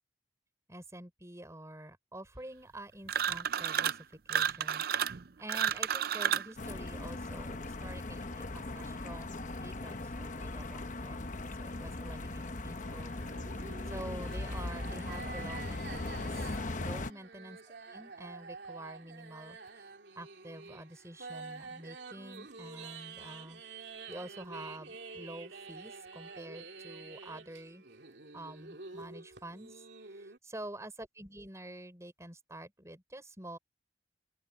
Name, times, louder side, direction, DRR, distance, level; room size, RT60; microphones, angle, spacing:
voice 1, 0.7-16.5 16.8-23.6 24.1-27.8 28.3-33.6, right 1 dB, 15° right, 6.3 m, -48 dB
sound 1, 3.1-4.0 4.3-6.5, right 8 dB, 55° right, 0.6 m, -31 dB
sound 2, 6.6-17.1, left 2 dB, 45° left, 1.0 m, -39 dB
sound 3, 12.8-30.4, right 4 dB, 80° right, 2.5 m, -48 dB
open air
head